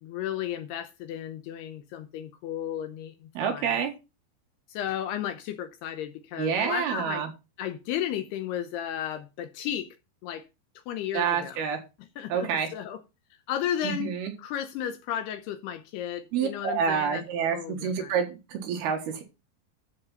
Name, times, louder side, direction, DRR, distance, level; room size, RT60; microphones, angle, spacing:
voice 1, 0.0-3.8 4.7-7.3 7.6-10.0 10.2-10.4 10.9-11.6 12.0-13.0 13.5-17.2 17.5-18.1, left 10 dB, 80° left, 2.6 m, -34 dB
voice 2, 3.3-3.9 6.4-7.3 11.1-11.8 12.3-12.7 13.8-14.3 16.3-19.2, right 7 dB, 65° right, 3.3 m, -28 dB
13.0 x 4.7 x 5.5 m
omnidirectional pair, 5.2 m